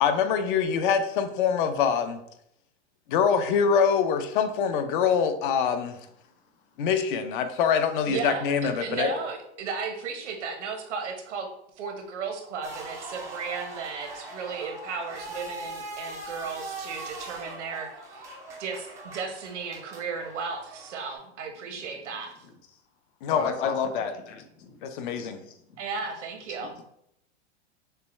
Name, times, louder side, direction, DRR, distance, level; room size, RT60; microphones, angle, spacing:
voice 1, 0.0-2.2 3.1-6.0 6.8-9.1 23.2-24.1 24.8-25.4, left 7 dB, 45° left, 0.6 m, -24 dB
voice 2, 8.0-11.5 11.8-18.3 18.6-22.3 25.8-26.7, right 5 dB, 90° right, 1.1 m, -35 dB
sound 1, 12.6-21.2, right 2 dB, 10° right, 0.4 m, -41 dB
voice 3, 23.3-24.8 25.2-25.6 26.7-26.8, left 5 dB, 70° left, 0.9 m, -38 dB
6.5 x 2.2 x 3.1 m
supercardioid pair, 155°, 35 cm